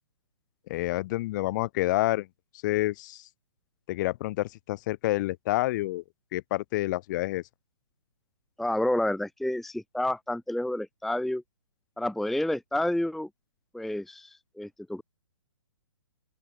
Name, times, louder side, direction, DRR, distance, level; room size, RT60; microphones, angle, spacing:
voice 1, 0.7-2.3 2.6-3.2 3.9-6.0 6.3-7.4, left 17 dB, 40° left, 2.0 m, -28 dB
voice 2, 8.6-11.4 12.0-13.3 13.7-15.0, left 1 dB, ahead, 0.8 m, -29 dB
open air
hypercardioid pair, 135°, 16 cm